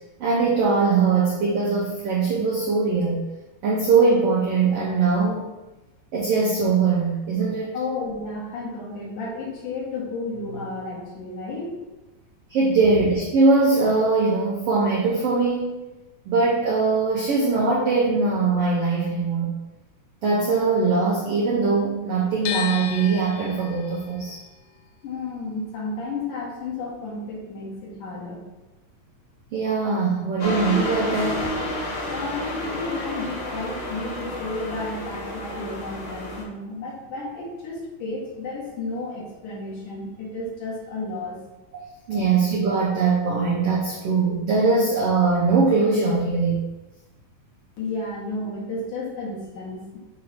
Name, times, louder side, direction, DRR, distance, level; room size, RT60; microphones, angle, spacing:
voice 1, 0.2-3.2 3.6-5.5 6.1-7.7 12.5-15.7 16.3-19.5 20.2-24.4 29.5-31.4 41.7-41.8 42.1-46.6, right 4 dB, 85° right, -4 dB, 1.3 m, -21 dB
voice 2, 7.7-11.7 25.0-28.4 32.1-41.3 42.1-42.3 47.8-49.8, left 2 dB, 65° left, -4 dB, 2.8 m, -32 dB
sound 1, 22.5-28.5 28.8-30.1, left 10 dB, 85° left, 2.4 m, -37 dB
sound 2, 30.4-36.4, left 1 dB, 45° left, 2.0 m, -30 dB
6.4 x 2.9 x 5.7 m, 1.1 s
omnidirectional pair, 4.1 m